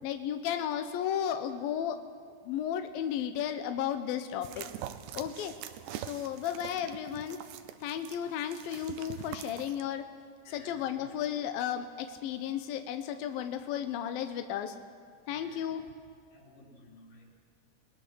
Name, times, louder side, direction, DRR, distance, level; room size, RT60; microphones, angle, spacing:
voice 1, 0.0-2.0 2.4-4.7 5.1-5.5 5.9-7.4 7.8-10.0 10.5-14.8 15.3-15.8, left 9 dB, 80° left, 7 dB, 2.1 m, -34 dB
sound 1, 4.4-9.8, right 11 dB, 75° right, 2.8 m, -44 dB
voice 2, 10.4-11.1 15.3-15.7 16.3-17.3, left 2 dB, 45° left, -3 dB, 5.4 m, -55 dB
29.5 x 20.5 x 6.3 m, 2.1 s
omnidirectional pair, 5.4 m